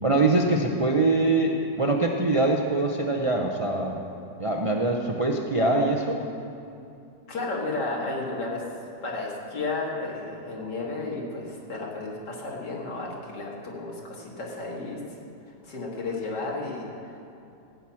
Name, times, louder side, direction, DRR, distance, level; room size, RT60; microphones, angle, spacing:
voice 1, 0.0-4.0 4.4-6.2, right 2 dB, 40° right, 0 dB, 0.4 m, -23 dB
voice 2, 7.3-8.6 9.0-15.0 15.6-16.9, left 3 dB, 85° left, -3 dB, 2.7 m, -32 dB
15.0 x 6.0 x 8.7 m, 2.6 s
omnidirectional pair, 1.8 m